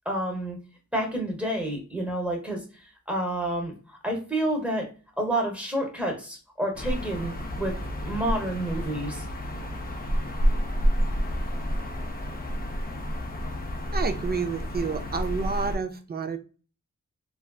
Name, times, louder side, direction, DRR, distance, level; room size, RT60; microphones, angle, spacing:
voice 1, 0.0-0.6 0.9-4.9 5.2-7.8 8.0-9.2, right 1 dB, 5° right, 0 dB, 0.9 m, -29 dB
sound 1, 6.7-15.8, equal, 30° left, 0.5 m, -29 dB
voice 2, 13.9-16.4, right 5 dB, 35° right, 8 dB, 0.4 m, -29 dB
3.2 x 2.4 x 2.3 m, 0.35 s
wide cardioid pair, 110°, 30 cm